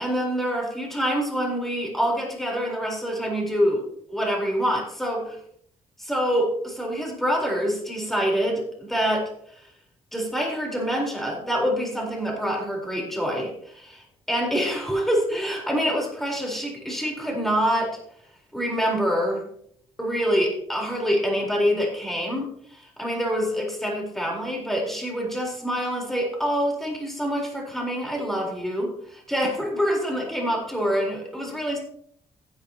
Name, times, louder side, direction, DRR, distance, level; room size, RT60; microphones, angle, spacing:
voice 1, 0.0-5.4 6.0-9.3 10.1-18.0 18.5-19.4 20.0-31.8, equal, ahead, -1 dB, 4.1 m, -26 dB
15.0 x 9.9 x 2.9 m, 0.67 s
cardioid pair, 105°, 12 cm